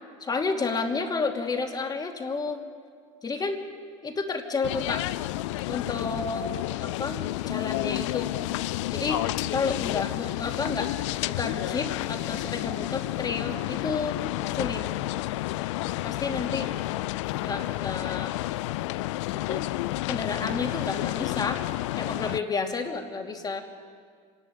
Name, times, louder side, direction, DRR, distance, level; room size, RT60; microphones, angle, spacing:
voice 1, 0.2-2.6 3.2-3.6 4.0-5.0 5.7-6.5 6.8-7.2 7.5-8.6 8.9-9.2 9.5-10.9 11.3-14.2 14.5-14.9 16.0-16.7 17.4-18.4 19.3-19.7 20.1-21.6 22.0-23.6, left 4 dB, 25° left, 3 dB, 2.8 m, -31 dB
sound 1, 4.6-22.4, left 17 dB, 80° left, 0.5 m, -30 dB
26.5 x 11.5 x 8.8 m, 2.1 s
hypercardioid pair, 85°, 15 cm